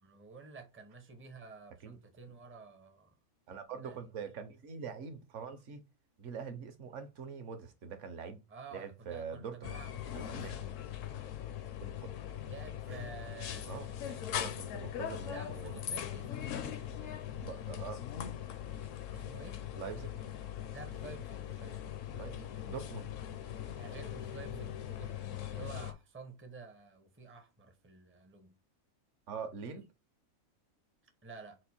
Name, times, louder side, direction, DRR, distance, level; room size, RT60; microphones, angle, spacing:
voice 1, 0.0-3.1 3.7-4.1 8.5-10.8 12.4-14.3 15.3-17.5 19.1-19.6 20.7-22.0 23.8-28.6 31.2-31.6, right 4 dB, 15° right, 0.4 m, -51 dB
voice 2, 3.5-5.8 6.2-8.4 8.7-9.8 10.1-10.6 11.8-12.1 12.9-13.1 13.7-13.9 14.3-15.8 17.4-18.0 19.8-20.1 22.1-23.1 29.3-29.9, right 6 dB, 60° right, 1.0 m, -44 dB
sound 1, 9.6-25.9, left 10 dB, 70° left, 0.9 m, -41 dB
4.3 x 2.5 x 4.2 m
omnidirectional pair, 1.5 m